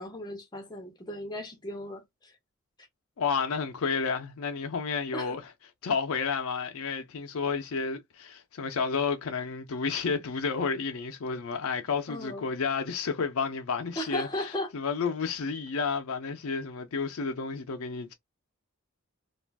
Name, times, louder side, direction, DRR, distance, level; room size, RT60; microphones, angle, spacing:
voice 1, 0.0-2.4 5.1-5.4 12.1-12.5 14.0-14.7, left 1 dB, 20° left, 0.6 m, -36 dB
voice 2, 3.2-5.4 5.8-18.1, left 5 dB, 75° left, 0.5 m, -31 dB
2.4 x 2.2 x 3.3 m
head